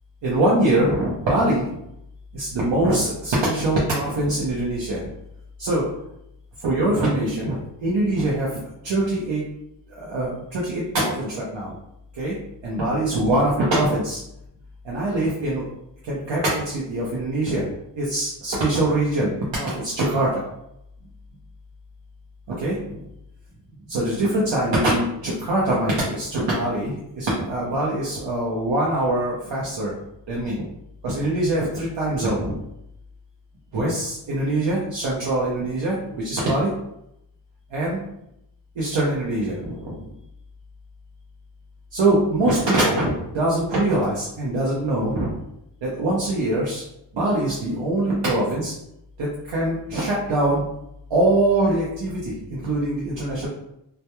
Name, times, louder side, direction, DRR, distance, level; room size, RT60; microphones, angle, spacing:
voice 1, 0.2-1.6 2.3-5.0 5.6-5.8 6.6-8.5 8.8-9.4 10.0-11.7 12.2-12.3 12.6-14.2 14.8-15.7 16.0-17.7 18.0-20.4 22.5-23.0 23.9-29.9 30.3-30.6 31.0-32.5 33.7-36.0 36.2-36.7 37.7-38.0 38.8-40.0 41.9-45.3 45.8-46.8 47.1-48.7 49.2-50.6 51.1-53.5, right 1 dB, 90° right, -6 dB, 0.6 m, -23 dB
2.2 x 2.1 x 2.9 m, 0.81 s
wide cardioid pair, 120°, 42 cm